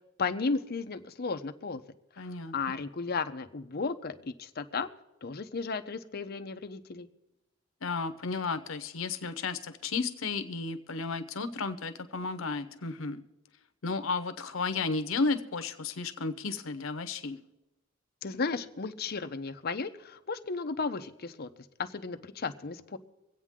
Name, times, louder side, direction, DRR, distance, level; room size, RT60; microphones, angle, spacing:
voice 1, 0.2-1.8 2.2-4.9 5.2-7.1 18.2-21.5 21.8-23.0, left 4 dB, 50° left, 8 dB, 0.7 m, -34 dB
voice 2, 2.2-2.5 7.8-13.2 13.8-17.4, left 4 dB, 85° left, 10 dB, 0.9 m, -33 dB
24.5 x 8.3 x 3.7 m, 0.97 s
head